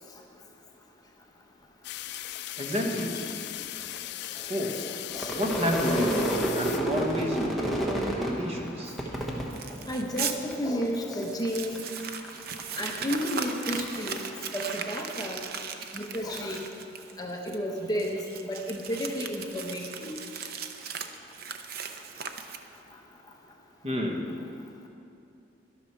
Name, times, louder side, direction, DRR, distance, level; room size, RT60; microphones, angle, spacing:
sound 1, 1.8-7.3, left 14 dB, 60° left, 0.3 m, -38 dB
voice 1, 2.6-3.2 4.5-4.8 5.3-8.9 23.8-24.3, equal, 35° right, 0 dB, 1.4 m, -30 dB
voice 2, 4.8-5.3 9.7-11.8 12.8-14.2 14.5-15.4 15.9-16.6 17.2-20.2, equal, 20° left, 1 dB, 0.9 m, -32 dB
Crowd / Fireworks, 5.1-10.5 10.8-11.5 11.8-15.3, right 1 dB, ahead, 1.2 m, -31 dB
Crumpling crinkling, 9.5-10.4 10.8-10.9 11.2-22.9, right 6 dB, 55° right, 0.6 m, -38 dB
12.0 x 12.0 x 4.5 m, 2.5 s
head